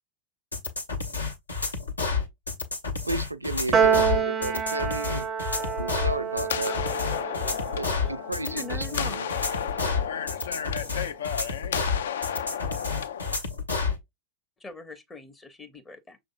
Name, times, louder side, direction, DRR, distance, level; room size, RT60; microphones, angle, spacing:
sound 1, 0.5-14.0, left 4 dB, 80° left, 0.8 m, -30 dB
voice 1, 3.1-5.3 5.8-6.7 7.7-9.3, right 2 dB, 85° right, 0.3 m, -33 dB
Piano, 3.7-10.2, right 7 dB, 25° right, 0.4 m, -29 dB
sound 2, 5.5-13.4, left 8 dB, 65° left, 0.3 m, -33 dB
voice 2, 6.6-8.2 10.5-11.2, left 6 dB, 45° left, 0.8 m, -44 dB
voice 3, 8.4-9.2 14.6-16.2, left 4 dB, 15° left, 0.6 m, -41 dB
6.1 x 2.7 x 2.4 m
figure-of-eight pair, 90°, 0 cm